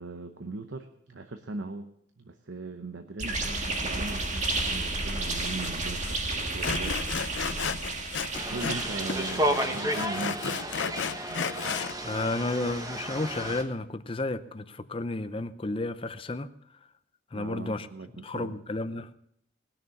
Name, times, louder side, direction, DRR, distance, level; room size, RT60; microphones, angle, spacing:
voice 1, 0.0-7.0 8.5-10.6 17.3-18.6, right 3 dB, 75° right, 7 dB, 0.9 m, -39 dB
sound 1, 3.2-10.2, right 2 dB, 40° right, 1.7 m, -32 dB
Sawing, 5.6-5.7 6.0-6.2 6.6-8.8 9.1-11.9, left 6 dB, 70° left, 0.6 m, -33 dB
sound 2, 8.3-13.6, right 1 dB, 20° right, 1.3 m, -32 dB
voice 2, 12.0-16.5 17.3-17.9 18.2-19.1, left 2 dB, 30° left, 12 dB, 0.6 m, -32 dB
19.5 x 6.8 x 7.1 m, 0.72 s
head